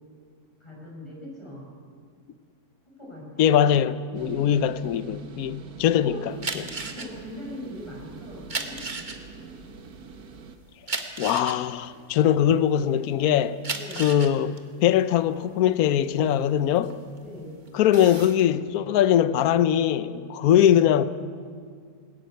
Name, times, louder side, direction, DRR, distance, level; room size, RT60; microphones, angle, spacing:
voice 1, 0.6-1.7 2.9-3.7 4.2-4.7 6.0-6.2 6.9-8.8 13.7-14.1 17.2-17.6, left 1 dB, 15° left, 6.3 m, -41 dB
voice 2, 3.4-6.7 11.2-13.6 14.0-16.9 17.7-21.0, left 10 dB, 65° left, 1.1 m, -22 dB
sound 1, 4.1-10.6, right 4 dB, 65° right, 1.7 m, -44 dB
sound 2, 6.3-12.9 13.4-17.3 17.7-18.4, right 3 dB, 30° right, 1.4 m, -35 dB
20.5 x 14.0 x 9.3 m
omnidirectional pair, 1.8 m